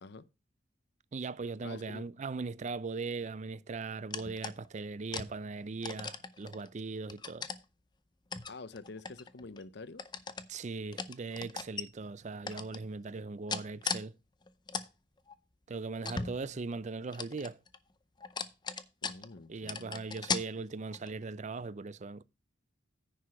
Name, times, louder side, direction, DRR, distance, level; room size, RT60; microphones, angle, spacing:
voice 1, 1.1-7.5 10.5-14.2 15.7-17.6 19.5-22.2, right 4 dB, 35° right, 0.4 m, -39 dB
voice 2, 1.6-2.0 8.5-10.0 16.2-16.3 19.0-20.0, left 3 dB, 60° left, 0.7 m, -47 dB
sound 1, 4.1-4.7 5.1-5.3 5.8-6.7 7.1-7.6 8.3-9.6 10.0-10.5 10.9-11.8 12.5-12.8 13.5-14.0 14.4-14.9 15.3-15.4 16.0-16.8 17.1-17.8 18.2-19.4 19.7-20.4 20.9-21.2, left 5 dB, 20° left, 0.6 m, -38 dB
9.9 x 4.8 x 5.7 m
head